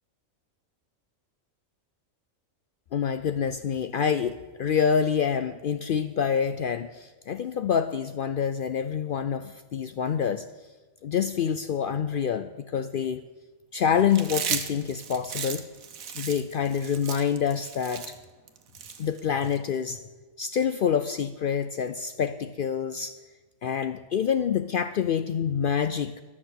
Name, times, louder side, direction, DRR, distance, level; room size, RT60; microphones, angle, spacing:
voice 1, 2.9-10.5 11.0-13.2 13.7-15.7 16.1-18.1 19.0-20.0 20.4-23.2 23.6-26.2, left 7 dB, 70° left, 11 dB, 0.5 m, -27 dB
Chewing mastication, 14.1-19.6, right 7 dB, 85° right, 1.4 m, -35 dB
12.5 x 6.1 x 8.1 m, 1.3 s
omnidirectional pair, 1.4 m